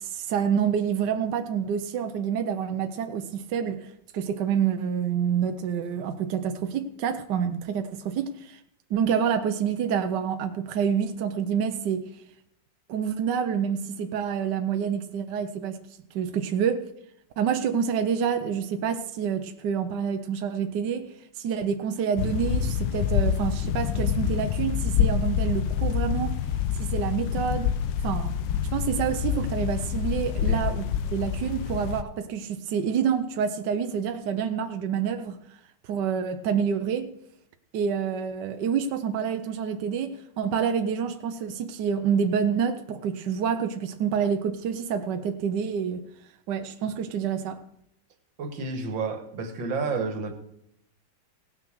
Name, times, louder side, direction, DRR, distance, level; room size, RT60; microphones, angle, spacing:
voice 1, 0.0-8.6 8.9-12.2 12.9-15.8 16.1-16.9 17.4-26.5 26.8-27.7 28.0-28.3 28.7-35.4 35.8-37.1 37.7-46.1 46.5-47.6, right 7 dB, 70° right, 1.3 m, -27 dB
sound 1, 22.2-32.0, left 8 dB, 80° left, 1.4 m, -27 dB
voice 2, 48.4-50.3, right 4 dB, 85° right, 2.2 m, -30 dB
17.5 x 6.3 x 6.3 m
omnidirectional pair, 2.0 m